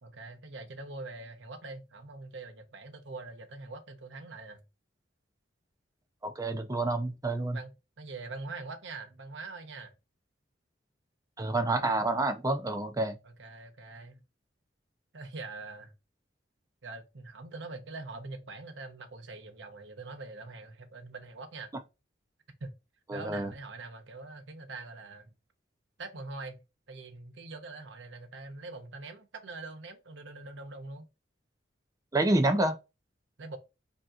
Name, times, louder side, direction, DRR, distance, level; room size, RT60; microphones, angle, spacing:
voice 1, 0.0-4.6 7.5-7.7 8.0-9.9 13.2-14.2 15.1-15.9 16.8-21.7 22.6-22.7 23.1-25.3 26.0-26.6 26.9-31.1 33.4-33.6, right 3 dB, 75° right, 0.9 m, -43 dB
voice 2, 6.2-7.6 11.4-13.2 23.1-23.5 32.1-32.8, right 2 dB, 20° right, 0.5 m, -28 dB
5.2 x 2.8 x 2.4 m
head